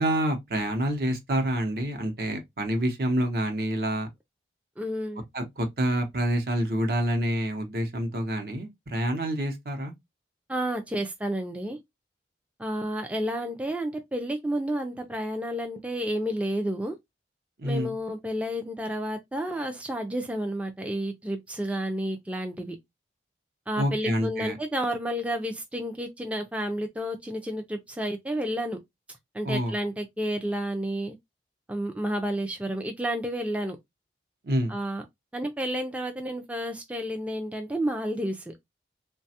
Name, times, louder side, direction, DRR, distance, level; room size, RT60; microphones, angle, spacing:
voice 1, 0.0-4.1 5.3-9.9 17.6-17.9 23.8-24.6 29.4-29.7 34.4-34.8, right 1 dB, 55° right, 0.7 m, -27 dB
voice 2, 4.8-5.2 10.5-11.8 12.6-17.0 17.6-22.8 23.7-28.8 29.3-31.2 31.7-33.8 34.7-35.0 35.3-38.5, equal, 5° right, 0.3 m, -31 dB
3.2 x 2.2 x 2.7 m
head